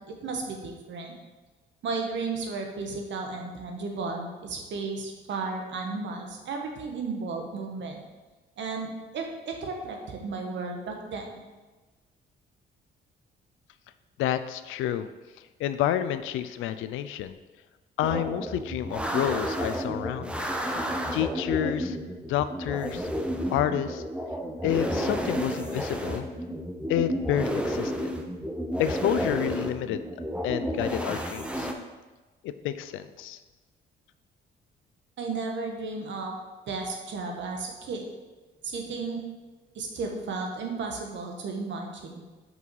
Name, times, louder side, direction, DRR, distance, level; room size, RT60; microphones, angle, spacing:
voice 1, 0.1-1.2 1.8-8.0 8.6-11.3 35.2-36.3 36.7-38.0 38.6-39.2 39.7-42.2, right 4 dB, 65° right, 2 dB, 1.3 m, -34 dB
voice 2, 14.2-15.1 15.6-17.4 18.0-20.5 21.1-22.0 22.3-23.1 23.5-24.0 24.6-26.3 26.9-28.1 28.8-30.0 30.4-31.7 32.4-33.4, left 11 dB, 90° left, 12 dB, 0.5 m, -29 dB
sound 1, 18.0-31.7, equal, 5° right, 0.8 m, -31 dB
5.9 x 5.5 x 4.7 m, 1.2 s
cardioid pair, 90°, 20 cm